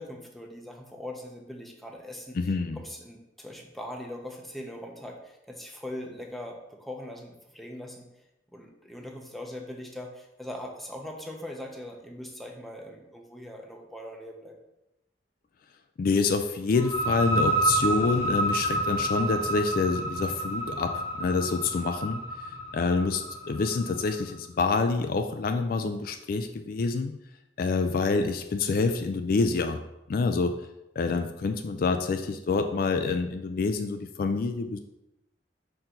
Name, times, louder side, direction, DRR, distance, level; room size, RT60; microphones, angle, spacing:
voice 1, 0.0-2.4 2.8-8.2 8.5-14.6, left 1 dB, ahead, 0 dB, 0.7 m, -41 dB
voice 2, 2.4-2.8 16.0-22.2 22.7-27.1 27.6-29.8 30.1-30.5 31.0-34.8, left 4 dB, 55° left, 7 dB, 0.4 m, -27 dB
sound 1, 16.7-24.2, right 2 dB, 35° left, 1.1 m, -29 dB
5.4 x 4.5 x 3.8 m, 0.92 s
head